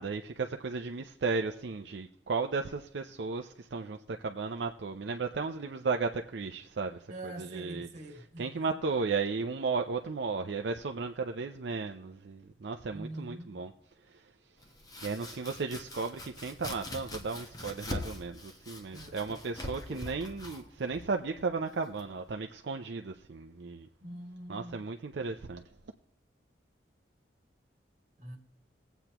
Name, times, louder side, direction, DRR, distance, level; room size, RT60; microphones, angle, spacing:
voice 1, 0.0-13.7 14.1-14.3 15.0-23.9 24.5-25.6, right 4 dB, 70° right, 0.5 m, -35 dB
voice 2, 7.1-8.7 12.9-13.6 18.9-19.2 24.0-24.9 28.2-28.4, right 1 dB, 40° right, 1.9 m, -44 dB
Domestic sounds home sounds, 14.6-22.3, left 2 dB, 20° left, 1.0 m, -43 dB
20.5 x 8.0 x 2.9 m
head